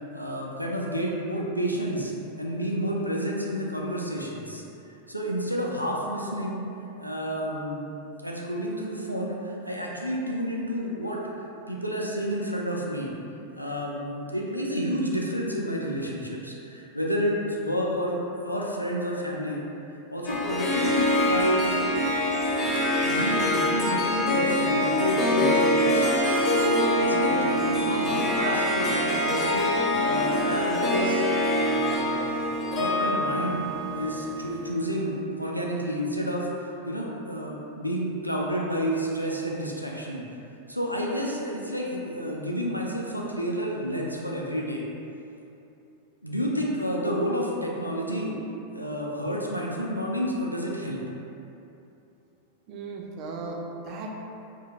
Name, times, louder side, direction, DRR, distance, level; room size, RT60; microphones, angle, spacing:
voice 1, 0.1-2.1 2.4-4.6 5.1-6.6 7.0-7.9 8.2-13.1 13.5-19.6 20.1-21.7 23.0-26.1 26.6-29.6 30.0-31.2 31.5-33.6 33.9-36.5 36.8-40.2 40.7-44.8 46.2-48.4 48.7-51.0, equal, 90° left, -3 dB, 0.3 m, -30 dB
Harp, 20.3-34.7, left 1 dB, 30° left, 0.5 m, -25 dB
voice 2, 52.7-54.1, right 3 dB, 40° right, 0 dB, 0.4 m, -36 dB
2.7 x 2.6 x 2.7 m, 2.8 s
figure-of-eight pair, 90°, 0 cm